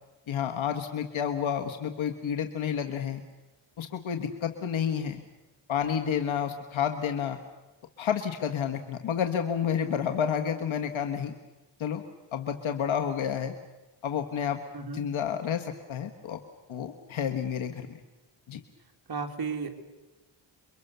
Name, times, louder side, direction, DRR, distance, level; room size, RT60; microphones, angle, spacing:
voice 1, 0.3-3.2 3.8-5.2 5.7-7.4 8.0-11.3 11.8-12.0 12.3-13.5 14.0-14.6 14.9-16.4 16.7-17.9 18.5-18.6, left 8 dB, 80° left, 5 dB, 1.7 m, -30 dB
voice 2, 14.7-15.1 19.1-19.7, right 5 dB, 50° right, 4 dB, 3.0 m, -33 dB
29.0 x 23.5 x 6.9 m, 1.1 s
wide cardioid pair, 115°, 47 cm